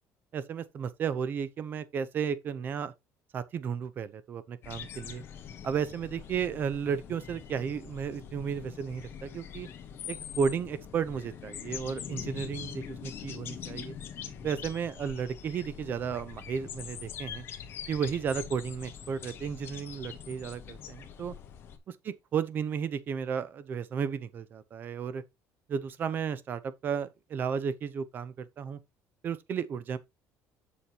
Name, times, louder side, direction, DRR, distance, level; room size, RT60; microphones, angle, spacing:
voice 1, 0.3-2.9 3.3-5.2 5.6-9.7 10.1-14.0 14.4-17.4 17.9-21.3 22.0-25.2 25.7-28.8 29.2-30.0, right 7 dB, 35° right, 0.7 m, -33 dB
sound 1, 4.6-21.8, left 8 dB, 40° left, 1.2 m, -43 dB
7.2 x 6.9 x 2.9 m
cardioid pair, 170°, 6 cm